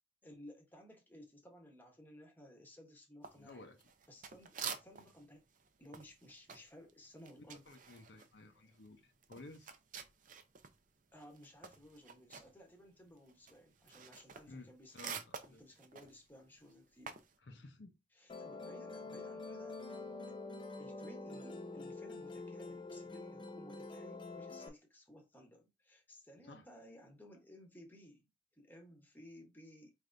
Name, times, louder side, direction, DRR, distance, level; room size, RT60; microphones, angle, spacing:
voice 1, 0.2-3.7 4.1-5.4 5.8-7.6 8.5-8.6 11.1-17.2 18.1-20.0 20.3-20.4 20.8-28.2 28.6-29.9, equal, 10° left, 1.0 m, -57 dB
sound 1, 3.2-5.2 5.5-10.8 11.1-17.3, right 6 dB, 45° right, 0.5 m, -49 dB
voice 2, 3.4-3.9 7.5-9.7 14.5-15.6 17.4-17.9 26.4-26.6, left 2 dB, 65° left, 0.7 m, -55 dB
Musical instrument, 18.3-24.7, left 3 dB, 25° left, 0.5 m, -46 dB
4.6 x 3.4 x 2.6 m
head